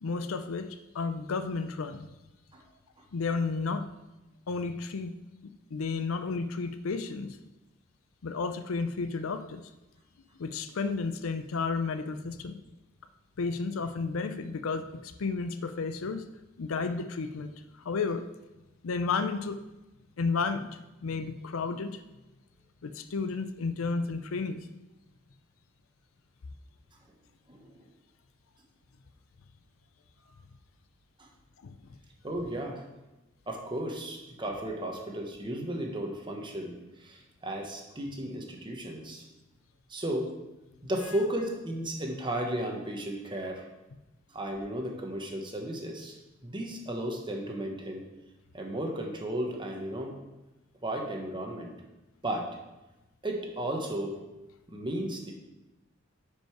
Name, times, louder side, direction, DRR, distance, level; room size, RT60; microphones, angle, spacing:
voice 1, 0.0-2.1 3.1-3.9 4.5-5.1 5.7-7.4 8.2-9.7 10.4-12.6 13.4-16.2 16.6-17.5 17.8-18.3 18.8-19.6 20.2-20.7 21.0-22.0 22.8-24.7 31.6-31.7, left 4 dB, 85° left, 10 dB, 0.5 m, -32 dB
voice 2, 32.2-32.8 33.5-36.7 37.0-39.2 39.9-40.3 40.8-43.7 44.3-46.2 46.4-48.1 48.5-50.1 50.8-51.7 52.2-52.5 53.2-54.1 54.7-55.3, right 1 dB, 25° right, 1 dB, 1.2 m, -34 dB
9.5 x 5.3 x 4.6 m, 1.0 s
head